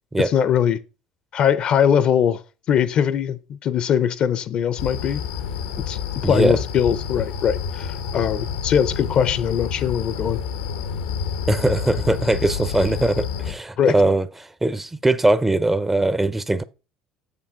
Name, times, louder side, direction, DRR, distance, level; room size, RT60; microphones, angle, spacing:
voice 1, 0.2-0.8 1.3-2.4 2.7-5.2 5.8-10.4 13.8-13.9, left 8 dB, 50° left, 0.7 m, -21 dB
sound 1, 4.8-13.5, left 7 dB, 80° left, 1.0 m, -29 dB
voice 2, 6.2-6.6 11.5-16.6, right 2 dB, 10° right, 0.6 m, -21 dB
7.2 x 6.8 x 3.7 m
hypercardioid pair, 65°, 2 cm